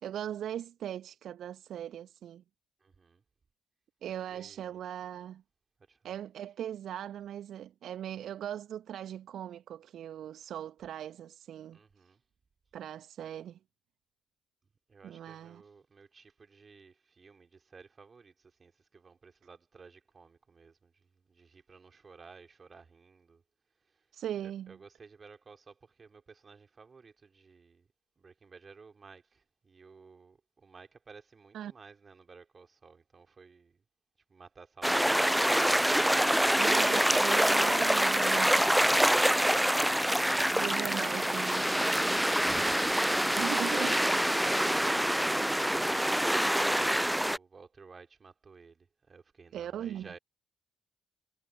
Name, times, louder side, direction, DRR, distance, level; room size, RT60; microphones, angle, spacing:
voice 1, 0.0-2.4 4.0-5.4 6.0-11.8 12.7-13.6 15.0-15.6 24.1-24.7 31.5-31.7 36.6-38.7 40.5-41.7 43.4-44.1 49.5-50.1, right 10 dB, 55° right, 1.4 m, -39 dB
voice 2, 2.8-3.2 4.3-4.7 5.9-6.1 11.7-12.2 14.9-23.4 23.8-24.1 24.4-27.9 28.2-33.8 34.3-35.8 42.0-43.1 44.4-50.2, right 5 dB, 35° right, 4.8 m, -55 dB
sound 1, 34.8-47.4, equal, 5° right, 0.5 m, -26 dB
figure-of-eight pair, 40°, 0 cm